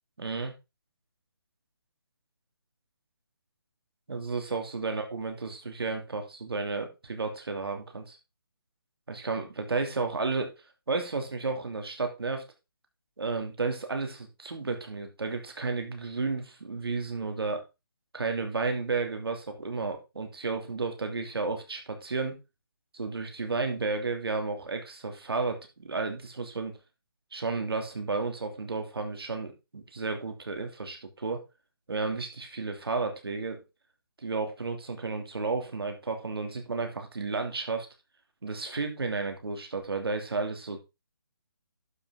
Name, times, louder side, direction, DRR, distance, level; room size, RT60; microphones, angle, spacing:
voice 1, 0.2-0.5 4.1-8.2 9.1-10.5 10.9-12.4 13.2-17.6 18.1-22.4 22.9-26.8 27.3-31.4 31.9-33.6 34.2-37.9 38.4-40.8, right 4 dB, 85° right, 5 dB, 2.8 m, -32 dB
11.5 x 6.1 x 3.8 m, 0.25 s
hypercardioid pair, 175°, 12 cm